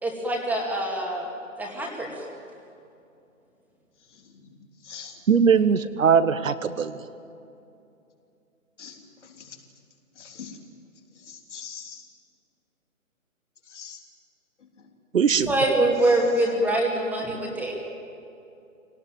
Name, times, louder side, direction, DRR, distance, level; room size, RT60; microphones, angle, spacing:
voice 1, 0.0-1.2 1.6-2.3 15.4-17.7, right 1 dB, 5° right, -1 dB, 2.3 m, -24 dB
voice 2, 4.1-4.6 4.8-5.2 8.8-9.6 10.2-10.6 11.2-12.0 13.7-14.0, left 7 dB, 55° left, 2 dB, 3.6 m, -43 dB
voice 3, 5.3-7.0 15.1-15.5, right 6 dB, 65° right, 12 dB, 1.2 m, -20 dB
24.0 x 18.5 x 9.4 m, 2.7 s
figure-of-eight pair, 145°, 42 cm